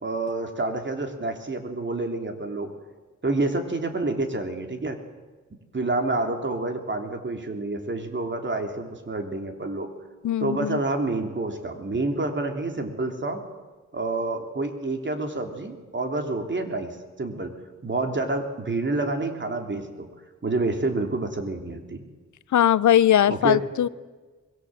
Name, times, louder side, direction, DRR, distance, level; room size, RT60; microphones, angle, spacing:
voice 1, 0.0-2.7 3.2-5.0 5.7-9.9 10.4-13.4 13.9-17.5 17.8-20.1 20.4-22.0 23.3-23.6, right 2 dB, 40° right, 5 dB, 3.2 m, -28 dB
voice 2, 10.2-10.8 22.5-23.9, left 10 dB, 85° left, 19 dB, 0.7 m, -20 dB
25.0 x 21.5 x 7.8 m, 1.3 s
wide cardioid pair, 100°, 29 cm